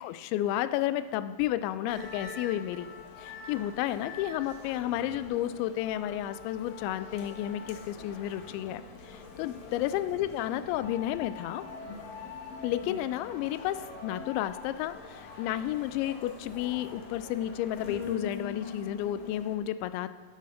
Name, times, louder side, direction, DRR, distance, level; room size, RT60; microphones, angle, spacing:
voice 1, 0.0-2.9 3.2-11.6 12.6-20.1, left 12 dB, 85° left, 13 dB, 2.8 m, -32 dB
sound 1, 1.9-19.6, left 5 dB, 65° left, 2.5 m, -44 dB
11.5 x 9.7 x 4.9 m, 1.5 s
omnidirectional pair, 5.2 m